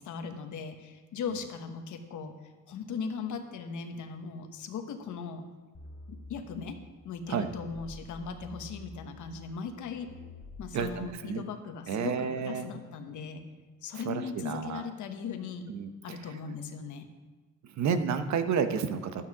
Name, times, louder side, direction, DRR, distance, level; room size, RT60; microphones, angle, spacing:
voice 1, 0.0-2.3 2.7-5.4 6.1-6.8 7.0-10.1 10.6-13.4 13.8-15.7 16.0-17.1, left 6 dB, 75° left, 6 dB, 1.2 m, -38 dB
sound 1, 5.7-11.1, left 2 dB, 45° left, 2.0 m, -48 dB
voice 2, 10.7-11.4 11.9-12.7 13.9-14.8 15.7-15.9 17.8-19.3, right 6 dB, 65° right, 9 dB, 1.0 m, -30 dB
11.5 x 8.7 x 4.9 m, 1.3 s
cardioid pair, 90°, 30 cm